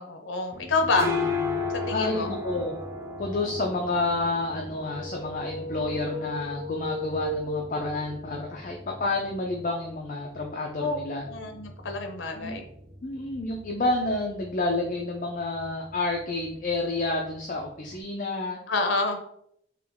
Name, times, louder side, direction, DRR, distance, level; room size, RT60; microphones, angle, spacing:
voice 1, 0.0-1.1 1.9-2.3 10.8-11.0 11.2-12.7 18.7-19.2, left 3 dB, 80° left, 6 dB, 0.7 m, -27 dB
sound 1, 0.5-18.0, left 3 dB, 15° right, 0.4 m, -37 dB
voice 2, 1.9-2.7 3.2-11.2 12.3-12.6 13.0-18.6, left 2 dB, 40° left, 1 dB, 0.4 m, -29 dB
sound 2, 4.7-8.3, equal, 35° right, 1.1 m, -35 dB
3.7 x 2.9 x 3.5 m, 0.72 s
head